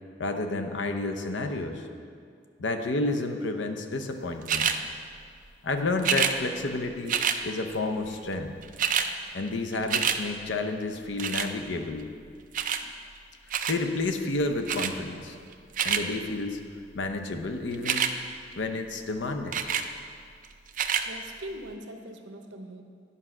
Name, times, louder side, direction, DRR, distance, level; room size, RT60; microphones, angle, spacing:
voice 1, 0.2-1.8 2.6-4.7 5.6-7.2 7.4-8.5 9.3-12.1 12.8-12.9 13.5-15.4 15.8-16.6 16.9-18.1 18.6-19.6, left 2 dB, 75° left, 5 dB, 0.7 m, -30 dB
sound 1, 4.5-4.8 6.0-6.4 7.1-7.4 8.3-8.4 8.6-9.1 9.5-10.2 11.2-11.5 12.5-12.8 13.5-13.8 14.7-14.9 15.5-16.0 17.7-18.1 19.5-19.9 20.7-21.1 21.7-21.8, right 8 dB, 45° right, 0.4 m, -26 dB
voice 2, 21.0-22.8, right 1 dB, 80° right, 5 dB, 0.8 m, -41 dB
10.0 x 5.5 x 6.0 m, 2.2 s
head